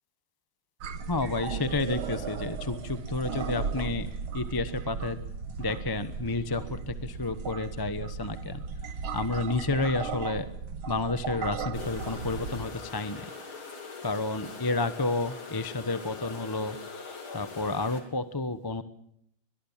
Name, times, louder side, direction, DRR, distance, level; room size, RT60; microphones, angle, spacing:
sound 1, 0.8-12.6, right 5 dB, 85° right, 2.4 m, -36 dB
voice 1, 1.1-5.2 5.6-8.6 9.1-10.5 10.9-13.3 14.0-16.8 17.3-18.8, left 3 dB, 20° left, 12 dB, 0.6 m, -31 dB
Bees buzzing around tree, 11.7-18.0, left 4 dB, 85° left, 4.1 m, -42 dB
23.0 x 21.5 x 7.4 m, 0.69 s
omnidirectional pair, 2.2 m